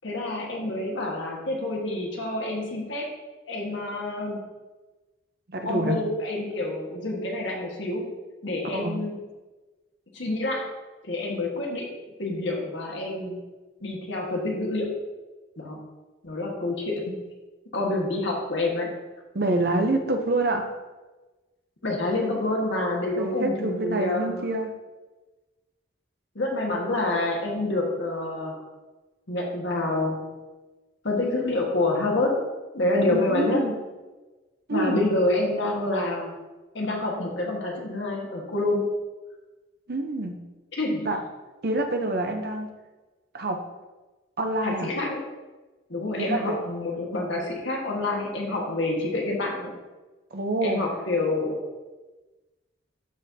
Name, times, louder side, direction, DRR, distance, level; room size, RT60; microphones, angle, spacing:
voice 1, 0.0-3.0 3.5-4.4 5.6-8.1 8.4-9.2 10.1-10.7 11.0-11.9 12.2-13.4 13.8-15.0 15.6-15.8 16.2-17.1 17.7-18.9 21.8-24.4 26.3-28.6 29.3-30.3 31.0-32.4 32.7-33.7 34.7-36.3 36.7-38.9 40.7-41.1 44.6-45.2 45.9-49.7 50.6-51.6, left 2 dB, 70° left, -1 dB, 1.5 m, -27 dB
voice 2, 5.5-6.0 8.7-9.0 19.3-20.8 22.2-22.3 23.2-24.7 33.1-33.7 34.7-35.1 39.9-40.4 41.0-41.2 41.6-42.7 43.3-43.6 44.4-44.9 46.2-46.6 50.3-50.8, right 2 dB, 50° right, 5 dB, 0.7 m, -27 dB
12.5 x 4.2 x 2.7 m, 1.2 s
head